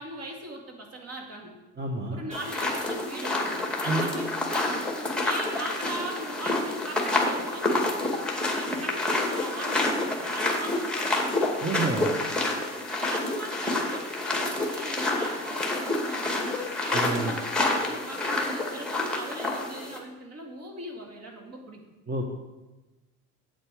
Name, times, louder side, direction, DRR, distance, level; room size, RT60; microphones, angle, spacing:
voice 1, 0.0-1.6 2.1-4.7 5.1-7.9 8.3-11.5 13.1-21.8, right 1 dB, 45° right, 1 dB, 2.5 m, -39 dB
voice 2, 1.8-2.2 3.8-4.1 11.6-12.1 16.9-17.3 22.1-22.3, right 3 dB, 30° right, 1 dB, 1.3 m, -29 dB
sound 1, 2.3-20.0, left 2 dB, 5° left, 2.1 m, -28 dB
8.2 x 8.0 x 4.8 m, 1.1 s
supercardioid pair, 90°, 33 cm